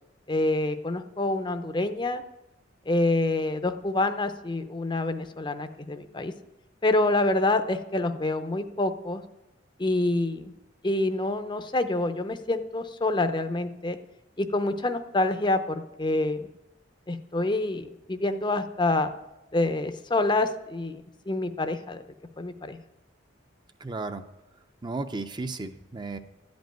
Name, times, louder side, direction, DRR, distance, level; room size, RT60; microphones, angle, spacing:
voice 1, 0.3-2.2 2.9-6.3 6.8-9.2 9.8-10.5 10.8-14.0 14.4-16.5 17.1-19.1 19.5-21.0 21.3-22.0 22.4-22.8, left 2 dB, 25° left, 9 dB, 0.6 m, -27 dB
voice 2, 23.8-24.2 24.8-26.2, right 3 dB, 25° right, 9 dB, 0.6 m, -34 dB
13.0 x 5.3 x 9.1 m, 0.96 s
head